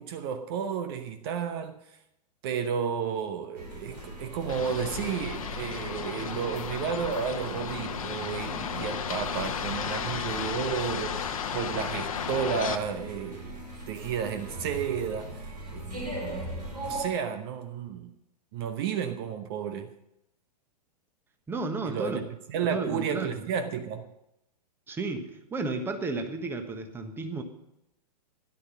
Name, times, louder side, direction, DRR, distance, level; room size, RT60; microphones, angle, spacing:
voice 1, 0.0-2.0 2.4-13.5 13.9-15.9 16.8-18.1 18.5-19.9 21.8-24.1, right 7 dB, 35° right, 0.9 m, -32 dB
sound 1, 3.6-17.1, right 1 dB, 75° right, 4.5 m, -40 dB
sound 2, 4.5-12.8, left 8 dB, 55° left, 1.1 m, -34 dB
voice 2, 21.5-22.2 22.7-23.3 24.9-27.4, right 3 dB, 10° right, 1.3 m, -33 dB
13.0 x 11.0 x 5.4 m
figure-of-eight pair, 110°, 21 cm